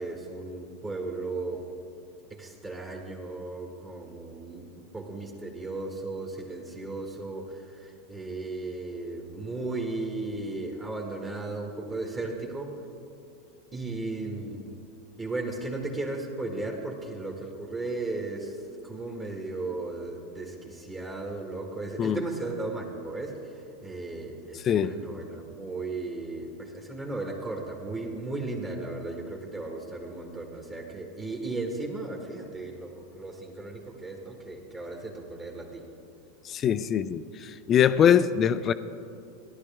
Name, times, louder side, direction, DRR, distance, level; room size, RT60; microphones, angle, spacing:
voice 1, 0.0-1.7 2.3-12.8 13.7-14.8 15.2-35.8, right 2 dB, 20° right, 1.8 m, -36 dB
voice 2, 24.7-25.0 36.5-37.2 37.7-38.7, left 9 dB, 35° left, 0.5 m, -22 dB
17.0 x 11.5 x 3.6 m
hypercardioid pair, 105°, 0 cm